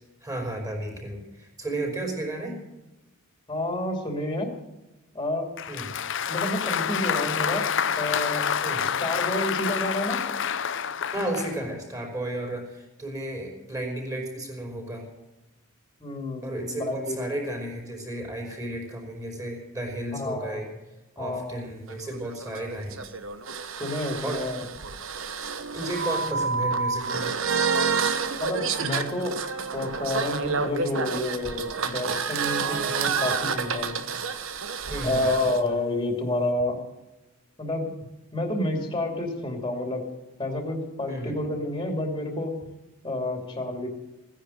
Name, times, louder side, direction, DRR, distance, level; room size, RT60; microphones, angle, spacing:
voice 1, 0.2-2.6 5.7-5.9 8.6-8.8 11.1-15.1 16.4-20.7 21.1-23.0 24.2-24.4 25.7-27.3 34.9-35.2 41.1-41.4, right 1 dB, 15° right, 1 dB, 4.9 m, -33 dB
voice 2, 3.5-4.5 5.1-5.5 6.3-7.6 8.0-8.4 8.8-10.2 16.0-17.2 20.1-20.6 21.2-21.6 23.8-24.6 28.4-29.3 29.7-34.0 35.0-36.8 37.6-37.9 38.3-40.1 40.4-42.5 43.0-43.9, left 1 dB, 20° left, 2 dB, 2.7 m, -29 dB
Applause, 5.6-11.6, left 7 dB, 60° left, 0.7 m, -28 dB
sound 1, 21.9-35.6, right 5 dB, 65° right, 1.1 m, -29 dB
16.5 x 10.0 x 7.9 m, 1.0 s
head